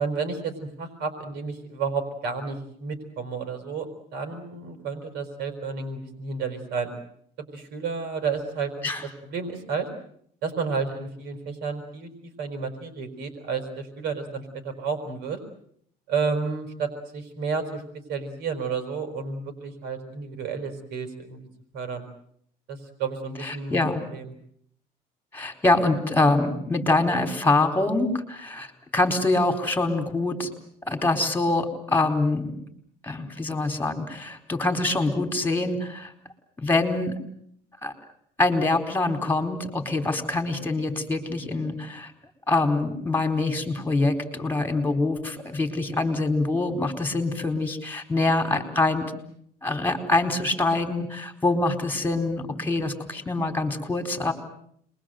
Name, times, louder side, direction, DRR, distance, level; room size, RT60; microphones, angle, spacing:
voice 1, 0.0-6.9 7.5-8.8 9.2-9.9 10.4-15.4 16.1-17.8 18.1-21.5 21.7-22.1 22.7-24.3, right 5 dB, 80° right, 7 dB, 4.8 m, -31 dB
voice 2, 23.4-24.0 25.3-30.5 30.9-32.6 33.0-36.1 36.6-37.1 37.8-37.9 38.4-42.1 42.5-49.1 49.6-54.3, left 2 dB, 10° left, 7 dB, 4.5 m, -25 dB
27.5 x 22.5 x 8.0 m, 0.68 s
cardioid pair, 110°, 17 cm